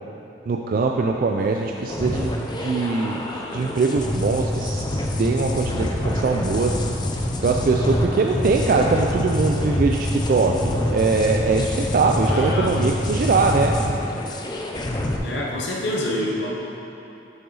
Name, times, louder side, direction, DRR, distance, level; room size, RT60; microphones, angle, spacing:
voice 1, 0.5-2.3 2.6-6.8 7.4-13.8, right 4 dB, 50° right, 2 dB, 0.3 m, -22 dB
sound 1, 1.9-15.2, left 1 dB, 25° left, 0.5 m, -26 dB
voice 2, 12.2-12.7 15.2-16.5, left 1 dB, 75° left, -3 dB, 0.8 m, -27 dB
7.5 x 5.6 x 4.0 m, 2.9 s
head